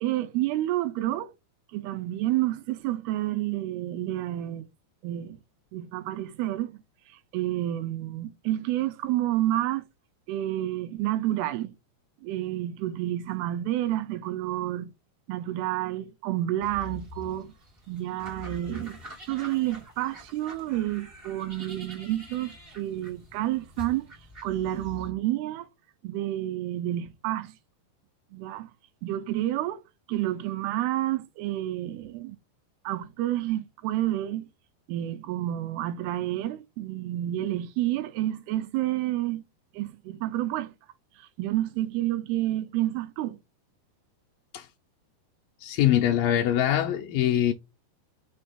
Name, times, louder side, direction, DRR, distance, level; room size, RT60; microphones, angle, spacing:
voice 1, 0.0-1.3 1.7-4.7 5.0-5.4 5.7-6.8 7.3-9.8 10.3-11.7 12.2-14.9 15.3-17.5 17.9-19.0 19.3-24.1 24.4-25.7 26.0-27.5 28.3-28.7 29.0-29.8 30.1-32.4 32.9-34.5 34.9-39.4 39.7-40.7 41.2-43.4, right 14 dB, 80° right, 2.5 m, -29 dB
sound 1, 16.6-25.1, left 1 dB, 60° right, 0.6 m, -46 dB
voice 2, 45.6-47.5, left 11 dB, 80° left, 2.1 m, -23 dB
6.1 x 3.3 x 5.6 m
omnidirectional pair, 4.8 m